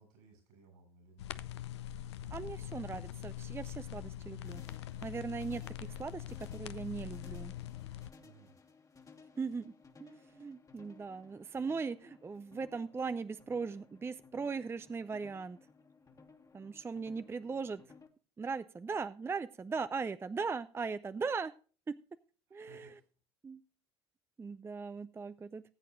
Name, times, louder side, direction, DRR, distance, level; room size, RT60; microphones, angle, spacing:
voice 1, 0.0-1.3 2.4-2.7 4.2-4.6 7.7-7.8 8.2-8.6 22.5-23.0, right 4 dB, 70° right, 4 dB, 7.2 m, -61 dB
sound 1, 1.2-8.1, left 11 dB, 80° left, 0.5 m, -43 dB
voice 2, 2.3-4.6 5.0-7.5 9.4-9.7 10.0-15.6 16.5-17.8 18.4-21.5 21.9-22.0 22.5-22.9 23.4-23.6 24.4-25.6, right 5 dB, 15° right, 13 dB, 0.5 m, -39 dB
sound 2, 4.5-18.1, left 4 dB, 25° left, 1.6 m, -59 dB
19.0 x 8.3 x 2.6 m, 0.38 s
hypercardioid pair, 65°, 14 cm